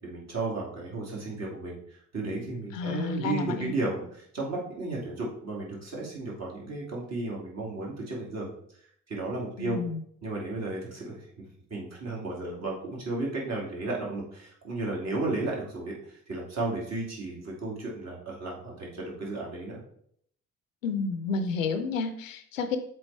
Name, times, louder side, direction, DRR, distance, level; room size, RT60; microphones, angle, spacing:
voice 1, 0.0-8.5 9.1-9.8 10.2-11.4 11.7-19.8, right 2 dB, 45° right, -3 dB, 2.5 m, -34 dB
voice 2, 2.7-3.7 9.6-10.0 20.8-22.8, left 4 dB, 85° left, 9 dB, 0.6 m, -30 dB
7.5 x 4.1 x 3.3 m, 0.65 s
figure-of-eight pair, 45°, 38 cm